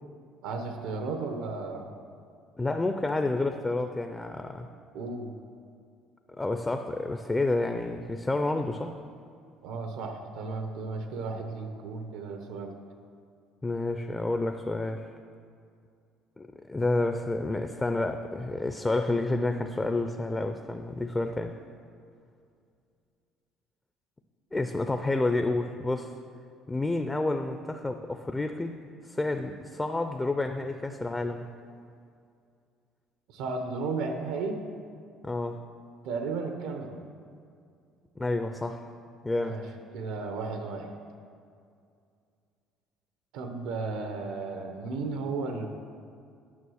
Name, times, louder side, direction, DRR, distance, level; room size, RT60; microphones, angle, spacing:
voice 1, 0.4-1.9 4.9-5.3 9.6-12.7 33.3-34.6 36.0-37.1 39.4-39.6 39.9-40.9 43.3-45.7, right 4 dB, 85° right, 5 dB, 0.9 m, -34 dB
voice 2, 2.6-4.7 6.4-9.0 13.6-15.0 16.4-21.5 24.5-26.1 26.7-28.8 29.0-31.5 35.2-35.6 38.2-38.9 39.2-39.6, left 2 dB, 10° left, 6 dB, 0.4 m, -29 dB
9.6 x 6.2 x 6.3 m, 2.3 s
cardioid pair, 145°, 0 cm